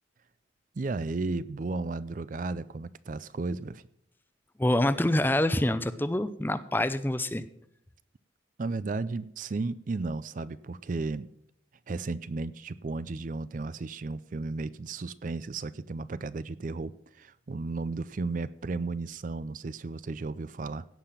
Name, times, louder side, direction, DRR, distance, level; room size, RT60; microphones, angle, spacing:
voice 1, 0.8-3.8 8.6-11.3 11.9-20.9, right 3 dB, 40° right, 0.4 m, -34 dB
voice 2, 4.6-7.4, left 1 dB, 10° left, 0.5 m, -26 dB
16.5 x 5.8 x 7.3 m
head